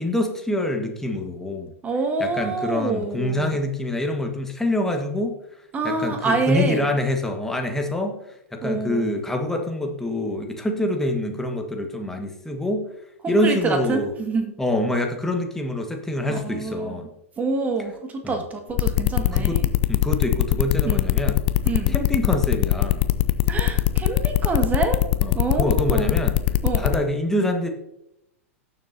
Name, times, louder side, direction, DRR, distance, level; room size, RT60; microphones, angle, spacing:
voice 1, 0.0-1.7 2.2-5.4 5.8-8.2 8.5-12.9 13.3-14.1 14.6-17.1 19.1-19.6 19.9-21.4 21.9-23.0 25.2-26.3 26.8-27.7, left 1 dB, 5° left, 3 dB, 1.5 m, -25 dB
voice 2, 1.8-3.6 5.7-6.9 8.6-9.1 13.2-14.5 16.3-17.1 17.4-19.7 20.8-21.1 21.6-22.0 23.5-25.0 25.3-26.2 26.6-26.9, right 3 dB, 20° right, 4 dB, 1.8 m, -26 dB
sound 1, 18.8-27.0, left 16 dB, 40° left, 0.6 m, -20 dB
17.0 x 7.2 x 2.7 m, 0.83 s
figure-of-eight pair, 100°, 8 cm